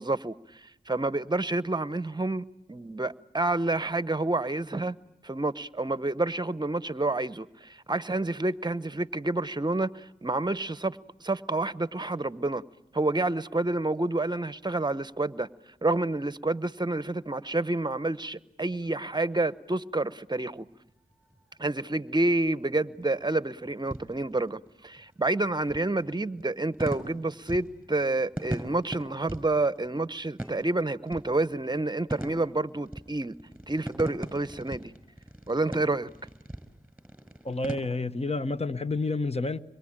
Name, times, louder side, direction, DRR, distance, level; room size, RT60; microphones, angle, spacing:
voice 1, 0.0-5.0 5.2-12.6 12.9-15.5 15.8-20.7 21.6-33.3 33.7-34.9 35.5-36.1, right 2 dB, 25° right, 0.9 m, -29 dB
sound 1, 20.7-37.8, right 1 dB, 5° right, 5.1 m, -41 dB
voice 2, 37.4-39.6, left 3 dB, 40° left, 1.1 m, -29 dB
26.0 x 22.5 x 8.9 m
cardioid pair, 40°, 17 cm